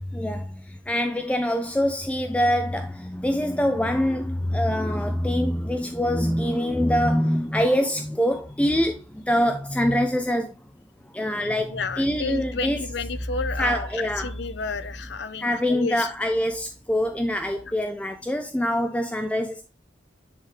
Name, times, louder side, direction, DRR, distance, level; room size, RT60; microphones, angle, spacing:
voice 1, 0.1-10.5 11.1-12.8 13.6-14.3 15.4-19.6, equal, 5° left, 0.4 m, -24 dB
voice 2, 11.7-16.1 17.5-17.6, left 4 dB, 65° left, 0.6 m, -31 dB
10.0 x 3.5 x 3.3 m
head